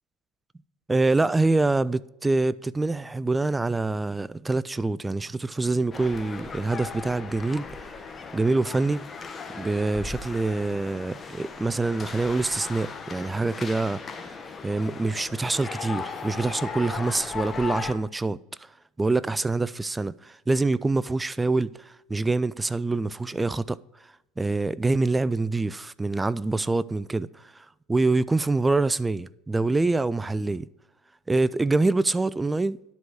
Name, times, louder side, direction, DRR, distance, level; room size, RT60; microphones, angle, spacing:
voice 1, 0.9-7.8 8.3-9.1 9.5-14.3 14.6-18.7 19.0-23.8 24.4-27.3 27.6-30.7 31.3-32.8, right 3 dB, 15° right, 0.3 m, -25 dB
sound 1, 5.9-17.9, left 5 dB, 25° left, 1.2 m, -37 dB
11.0 x 4.7 x 6.3 m
supercardioid pair, 95°, 0 cm